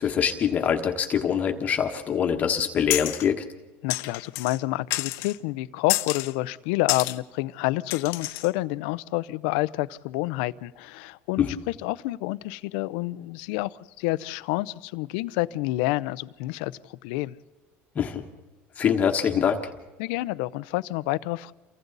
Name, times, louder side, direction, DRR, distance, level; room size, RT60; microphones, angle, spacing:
voice 1, 0.0-3.4 11.4-11.5 17.9-18.2 18.8-19.6, left 8 dB, 30° left, 1.3 m, -24 dB
sound 1, 2.9-3.3 3.9-4.6 4.9-5.4 5.9-6.3 6.9-7.2 7.9-8.5, left 18 dB, 60° left, 0.9 m, -29 dB
voice 2, 3.8-17.4 20.0-21.5, left 19 dB, 85° left, 0.7 m, -29 dB
29.0 x 24.0 x 4.1 m
cardioid pair, 160°, 5 cm